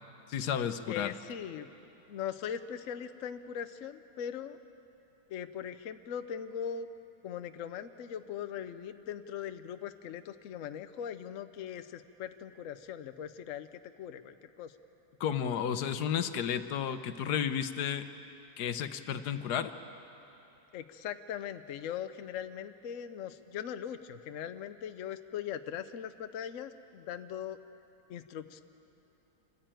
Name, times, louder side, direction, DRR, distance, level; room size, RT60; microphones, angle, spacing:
voice 1, 0.3-1.1 15.2-18.1 18.6-19.7, left 8 dB, 75° left, 11 dB, 1.4 m, -32 dB
voice 2, 0.9-1.7 2.1-4.6 5.3-6.9 7.2-14.7 20.7-27.6 28.1-28.6, left 9 dB, 60° left, 10 dB, 0.9 m, -40 dB
26.0 x 14.5 x 9.0 m, 2.9 s
omnidirectional pair, 1.7 m